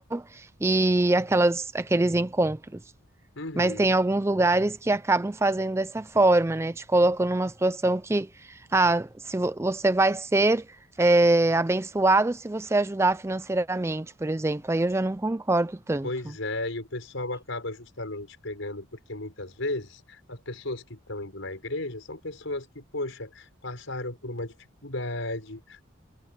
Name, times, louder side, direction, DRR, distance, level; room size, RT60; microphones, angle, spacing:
voice 1, 0.0-2.8 3.6-10.7 11.0-16.1, right 2 dB, 15° right, 0.4 m, -24 dB
voice 2, 3.4-3.9 16.0-24.5 24.8-25.8, left 2 dB, 80° left, 5.0 m, -34 dB
head